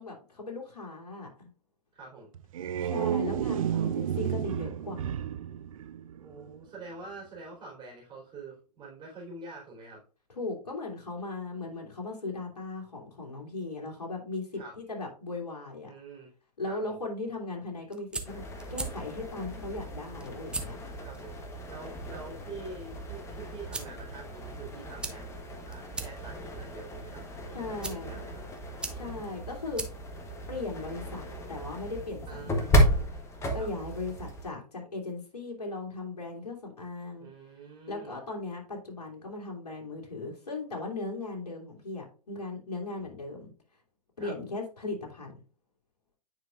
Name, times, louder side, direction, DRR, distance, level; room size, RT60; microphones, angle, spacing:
voice 1, 0.0-1.5 2.8-5.1 10.3-15.9 16.6-18.4 18.7-20.8 27.5-28.2 28.9-30.0 30.5-32.9 33.5-37.3 37.9-43.5 44.2-45.4, left 3 dB, 65° left, 0 dB, 2.7 m, -38 dB
voice 2, 1.9-2.3 3.7-3.9 6.2-10.0 14.6-14.8 15.9-16.3 16.6-17.0 21.0-21.4 21.7-25.4 25.7-28.4 32.3-33.2 33.6-33.8 37.2-38.2 44.2-44.3, right 3 dB, 20° right, -5 dB, 3.5 m, -46 dB
sound 1, 2.3-6.6, right 9 dB, 55° right, 0.5 m, -31 dB
sound 2, 17.7-31.1, right 3 dB, 5° right, 0.6 m, -43 dB
sound 3, 18.2-34.5, right 1 dB, 15° left, 1.1 m, -33 dB
9.2 x 5.2 x 2.5 m, 0.38 s
figure-of-eight pair, 110°, 21 cm